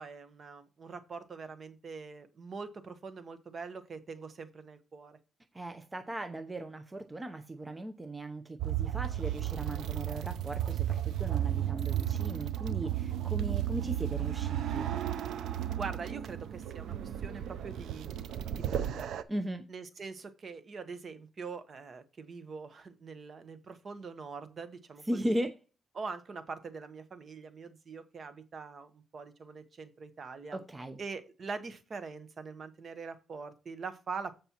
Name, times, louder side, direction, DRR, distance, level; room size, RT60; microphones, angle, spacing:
voice 1, 0.0-5.2 15.8-19.1 19.7-25.4 25.9-30.6 31.0-34.4, right 4 dB, 40° right, 1.2 m, -43 dB
voice 2, 5.5-14.9 19.3-19.6 25.1-25.6 30.5-31.0, right 1 dB, 15° right, 0.8 m, -37 dB
sound 1, 8.6-19.2, right 11 dB, 80° right, 0.6 m, -33 dB
14.5 x 5.3 x 3.0 m
cardioid pair, 115°, 0 cm